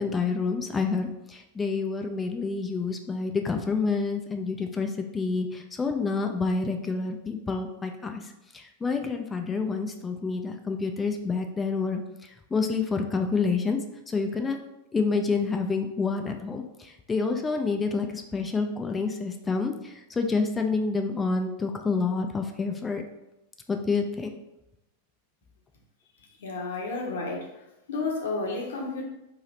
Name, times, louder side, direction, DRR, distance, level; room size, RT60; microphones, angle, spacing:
voice 1, 0.0-8.2 8.5-12.0 12.5-13.8 14.1-14.6 14.9-23.0 23.7-24.3, left 4 dB, 15° left, 4 dB, 0.3 m, -28 dB
voice 2, 26.4-27.5 27.9-29.0, left 3 dB, 60° left, 0 dB, 0.9 m, -31 dB
3.2 x 2.7 x 4.0 m, 0.91 s
figure-of-eight pair, 90°, 0 cm